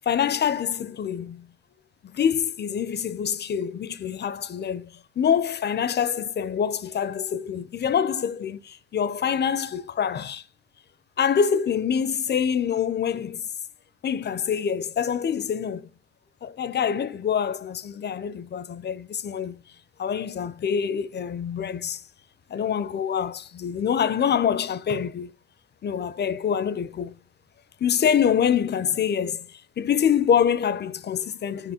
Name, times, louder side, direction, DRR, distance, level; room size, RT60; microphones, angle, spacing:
voice 1, 0.1-1.5 2.0-10.4 11.2-13.5 14.0-15.9 16.4-19.6 20.0-22.0 22.5-25.3 25.8-27.1 27.8-29.5 29.8-31.7, left 8 dB, 35° left, 0.5 m, -25 dB
11.5 x 5.3 x 2.8 m
figure-of-eight pair, 40°, 32 cm